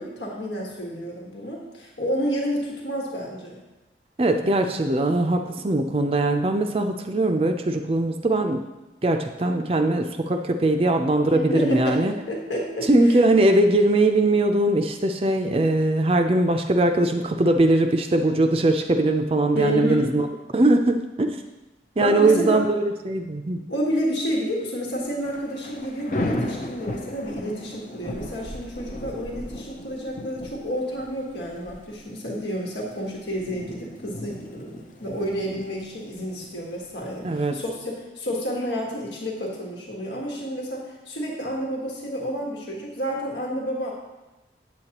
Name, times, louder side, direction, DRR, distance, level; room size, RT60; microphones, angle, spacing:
voice 1, 0.0-3.6 11.3-13.2 19.5-20.1 22.0-22.6 23.7-43.9, equal, 85° left, -2 dB, 1.5 m, -30 dB
voice 2, 4.2-8.6 9.0-12.1 12.9-20.3 20.5-21.4 22.0-23.7 37.2-37.6, right 2 dB, 30° right, 5 dB, 0.4 m, -21 dB
Thunder / Rain, 25.0-37.6, left 1 dB, 45° left, 0.6 m, -36 dB
8.4 x 8.1 x 2.9 m, 1.0 s
head